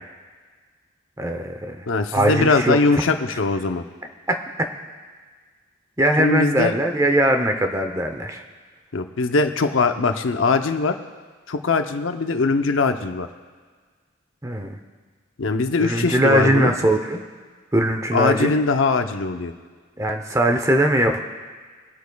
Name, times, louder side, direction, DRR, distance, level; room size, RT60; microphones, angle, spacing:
voice 1, 1.2-1.8 2.1-3.0 4.3-4.4 6.0-8.4 14.4-14.8 15.8-17.2 17.7-18.5 20.0-21.2, right 1 dB, 15° right, 5 dB, 0.7 m, -20 dB
voice 2, 1.9-3.8 6.2-6.7 8.9-11.0 11.5-13.3 15.4-16.7 18.1-19.5, left 3 dB, 85° left, 7 dB, 0.7 m, -21 dB
24.5 x 8.2 x 2.3 m, 1.5 s
head